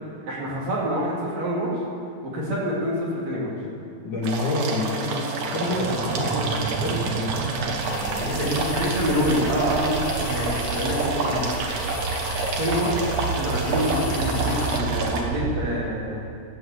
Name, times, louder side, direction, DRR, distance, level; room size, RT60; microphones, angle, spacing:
voice 1, 0.2-1.7 2.2-3.5 8.4-11.4 12.6-16.2, equal, 50° right, -6 dB, 4.0 m, -26 dB
voice 2, 4.0-8.7 11.2-11.5, left 2 dB, 60° left, -4 dB, 4.0 m, -29 dB
sound 1, 4.2-15.2, right 3 dB, 90° right, 3.2 m, -29 dB
sound 2, 5.7-15.7, right 5 dB, 75° right, 1.6 m, -31 dB
sound 3, 7.8-14.8, left 12 dB, 80° left, 1.8 m, -39 dB
15.0 x 7.9 x 8.1 m, 2.5 s
omnidirectional pair, 3.9 m